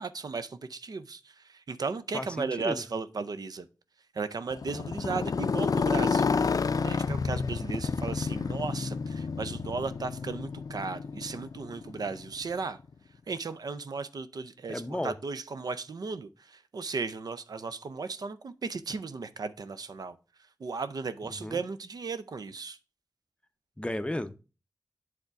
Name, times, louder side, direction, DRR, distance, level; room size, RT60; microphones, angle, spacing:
voice 1, 0.0-3.7 4.1-12.8 13.3-20.2 20.6-22.8, right 4 dB, 80° right, 0.5 m, -36 dB
voice 2, 2.1-2.8 14.7-15.1 21.2-21.6 23.8-24.4, left 1 dB, 15° left, 0.6 m, -34 dB
Motorcycle, 4.5-12.5, left 5 dB, 65° left, 0.4 m, -30 dB
8.0 x 3.6 x 5.7 m
wide cardioid pair, 50°, 7 cm